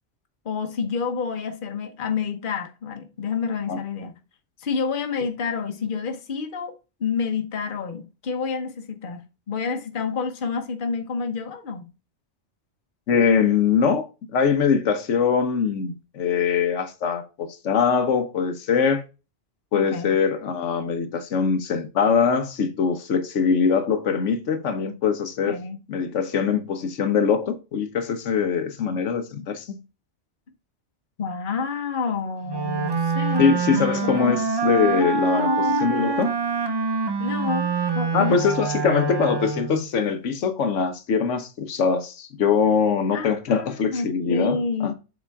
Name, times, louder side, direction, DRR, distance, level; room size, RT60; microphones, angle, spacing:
voice 1, 0.4-4.2 4.6-6.7 7.0-11.9 19.7-20.1 25.5-25.8 31.2-34.4 35.3-35.8 37.2-38.4 43.1-44.9, left 5 dB, 50° left, 1.1 m, -29 dB
voice 2, 13.1-14.1 14.3-19.0 19.7-25.6 25.9-29.8 33.4-35.5 35.8-36.3 38.1-44.9, left 6 dB, 85° left, 1.2 m, -22 dB
Wind instrument woodwind instrument, 32.5-39.9, right 5 dB, 30° right, 0.5 m, -25 dB
7.1 x 4.2 x 3.5 m
omnidirectional pair, 1.2 m